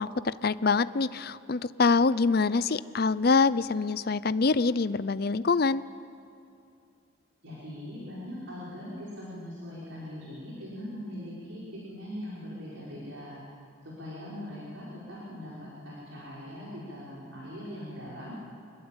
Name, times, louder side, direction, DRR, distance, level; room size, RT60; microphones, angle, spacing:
voice 1, 0.0-5.8, left 4 dB, 45° left, 16 dB, 0.5 m, -25 dB
voice 2, 7.4-13.4 13.8-18.4, left 1 dB, 70° right, -7 dB, 5.7 m, -41 dB
26.0 x 21.5 x 8.9 m, 2.6 s
head